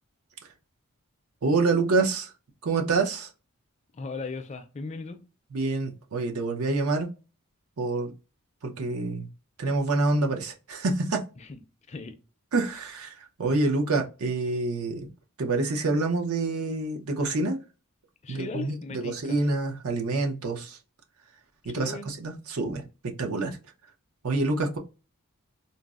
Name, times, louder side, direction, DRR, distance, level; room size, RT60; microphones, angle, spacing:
voice 1, 1.4-2.3 2.6-3.3 5.5-7.1 7.8-8.1 8.6-9.3 9.6-11.2 12.5-15.1 15.4-17.6 18.3-20.8 21.6-22.8 23.2-23.6 24.2-24.8, right 3 dB, 75° right, 0.7 m, -27 dB
voice 2, 3.9-5.2 11.4-11.6 11.9-12.2 18.2-19.4 21.6-22.1, left 4 dB, 30° left, 0.4 m, -37 dB
3.9 x 2.0 x 2.3 m
head